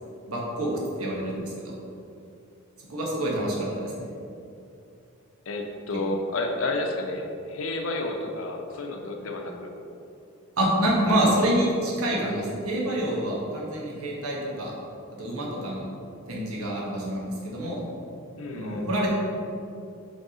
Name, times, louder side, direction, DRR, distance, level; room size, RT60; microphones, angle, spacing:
voice 1, 0.3-0.7 1.0-1.7 2.9-4.1 10.6-14.7 15.2-15.9 16.3-17.8 18.5-19.1, right 1 dB, 85° right, -4 dB, 1.3 m, -27 dB
voice 2, 5.5-9.7 18.3-18.9, left 2 dB, 65° left, 3 dB, 0.7 m, -31 dB
5.4 x 3.5 x 4.9 m, 2.7 s
head